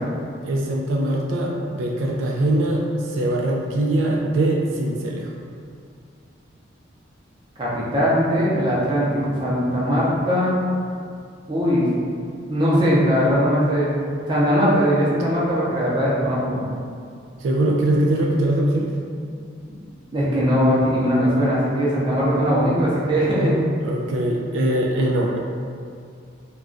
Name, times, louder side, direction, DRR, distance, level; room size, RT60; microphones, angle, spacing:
voice 1, 0.4-2.8 3.1-5.3 17.4-18.9 23.8-25.4, right 1 dB, 80° right, -1 dB, 0.3 m, -22 dB
voice 2, 7.6-10.6 11.5-11.9 12.5-13.9 14.3-16.6 20.1-23.5, equal, 25° right, -8 dB, 0.6 m, -20 dB
2.3 x 2.2 x 3.7 m, 2.3 s
head